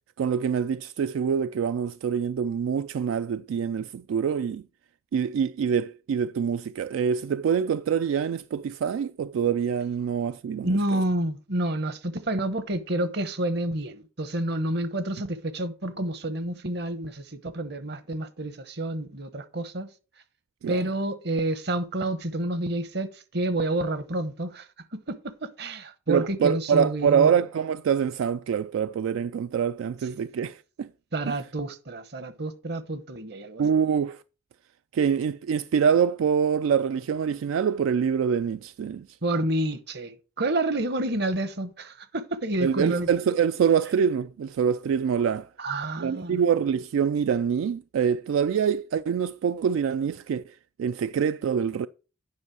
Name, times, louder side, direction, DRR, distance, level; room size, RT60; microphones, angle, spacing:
voice 1, 0.2-4.6 5.1-11.0 20.6-20.8 26.1-30.9 31.3-31.4 33.6-34.2 34.9-39.1 42.6-45.5 46.0-51.9, right 7 dB, 85° right, 0.3 m, -25 dB
voice 2, 10.6-19.9 20.7-27.4 31.1-33.6 39.2-43.1 45.6-46.4, right 1 dB, 55° right, 0.9 m, -29 dB
9.6 x 5.5 x 4.7 m
head